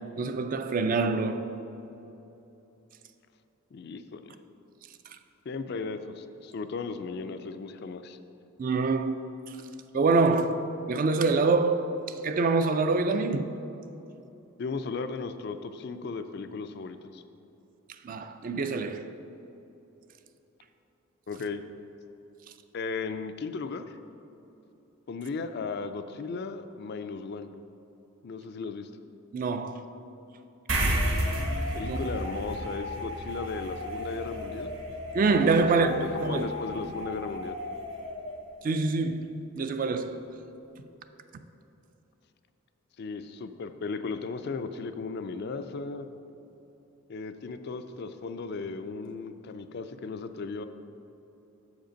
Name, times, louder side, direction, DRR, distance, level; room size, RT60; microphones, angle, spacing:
voice 1, 0.2-1.5 8.6-9.2 9.9-11.9 12.2-13.5 18.0-19.2 29.3-29.8 31.8-32.0 35.1-36.5 38.6-40.3, right 3 dB, 40° right, 0.3 m, -25 dB
voice 2, 3.7-4.4 5.5-8.2 14.6-17.2 21.3-21.6 22.7-24.0 25.1-27.5 28.2-28.9 31.7-34.7 35.8-36.0 36.3-37.6 43.0-46.1 47.1-50.6, left 4 dB, 50° left, 0.3 m, -36 dB
sound 1, 30.7-37.5, right 1 dB, 60° right, 1.2 m, -33 dB
sound 2, 31.0-38.3, left 2 dB, 85° left, 1.1 m, -38 dB
7.3 x 5.1 x 5.1 m
head